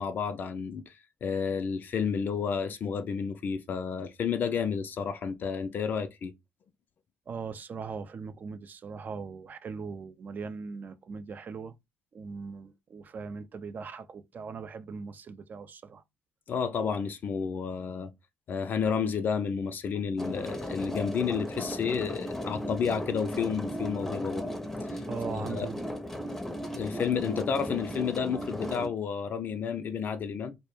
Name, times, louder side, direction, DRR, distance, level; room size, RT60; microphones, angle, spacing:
voice 1, 0.0-6.3 16.5-18.1 18.5-24.5 24.8-25.0 25.3-25.7 26.8-30.6, left 6 dB, 50° left, 0.3 m, -31 dB
voice 2, 7.3-11.7 12.1-16.0 25.1-26.0, right 5 dB, 45° right, 0.4 m, -40 dB
sound 1, 20.2-28.9, equal, 5° left, 0.6 m, -36 dB
2.1 x 2.0 x 3.0 m
hypercardioid pair, 50°, 4 cm